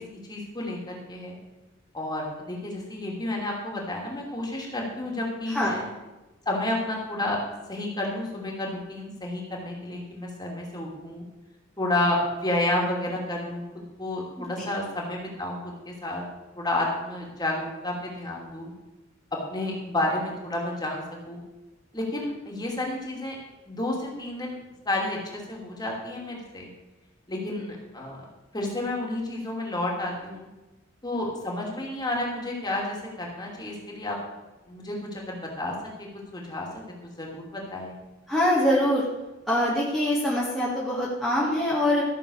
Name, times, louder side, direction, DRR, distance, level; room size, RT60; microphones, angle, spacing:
voice 1, 0.0-1.4 1.9-5.8 6.5-7.4 7.7-11.2 11.8-13.6 14.0-16.2 16.6-18.7 19.5-21.4 21.9-23.4 23.7-24.6 24.8-26.7 27.3-28.2 28.5-30.5 31.0-34.2 34.7-36.1 36.3-36.7 37.0-38.0, left 1 dB, 20° left, -2 dB, 2.8 m, -31 dB
voice 2, 14.4-14.7 38.3-39.0 39.5-42.0, left 1 dB, ahead, -7 dB, 2.1 m, -24 dB
14.0 x 7.1 x 6.4 m, 1.1 s
head